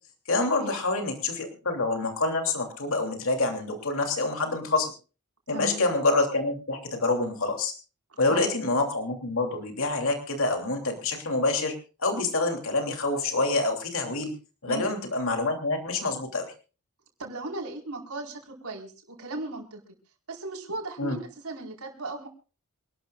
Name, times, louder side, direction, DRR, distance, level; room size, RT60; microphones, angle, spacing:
voice 1, 0.3-4.9 5.5-7.7 8.2-11.7 12.0-14.3 14.6-16.5 21.0-21.2, left 2 dB, 65° left, 3 dB, 3.0 m, -27 dB
voice 2, 5.5-5.9 8.3-8.6 14.7-14.9 17.2-19.8 20.3-22.3, right 2 dB, 75° right, 0 dB, 4.6 m, -37 dB
27.0 x 12.0 x 2.4 m, 0.34 s
head